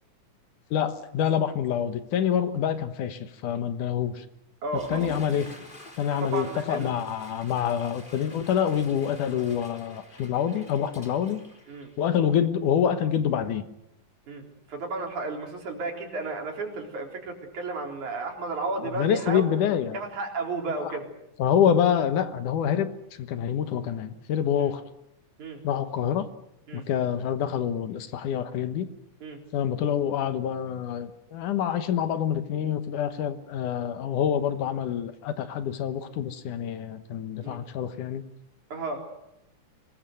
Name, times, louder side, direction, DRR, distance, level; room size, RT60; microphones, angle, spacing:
voice 1, 0.7-4.2 4.9-5.5 6.0-11.4 12.0-13.6 18.8-20.0 20.8-21.0 21.4-22.9 23.2-24.8 25.6-26.3 26.7-28.9 29.5-38.2, left 9 dB, 80° left, 10 dB, 2.8 m, -26 dB
voice 2, 4.6-5.1 6.2-6.9 11.7-11.9 14.3-19.4 19.9-21.1 25.4-25.6 26.7-26.8 29.2-29.4 37.4-37.6 38.7-39.0, right 3 dB, 65° right, 1 dB, 5.3 m, -33 dB
Water / Toilet flush, 4.7-12.4, left 2 dB, 15° left, 3.3 m, -47 dB
24.0 x 21.0 x 7.9 m, 0.82 s
omnidirectional pair, 3.6 m